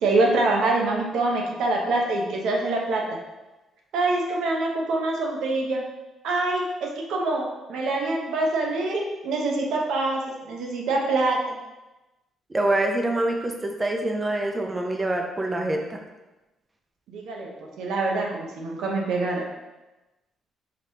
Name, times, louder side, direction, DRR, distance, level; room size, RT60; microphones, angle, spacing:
voice 1, 0.0-3.0 3.9-5.8 6.2-11.4 17.1-19.4, right 2 dB, 80° right, 0 dB, 0.8 m, -25 dB
voice 2, 12.5-16.0, right 1 dB, 20° right, 2 dB, 0.5 m, -25 dB
5.0 x 3.1 x 2.8 m, 1.1 s
cardioid pair, 140°, 0 cm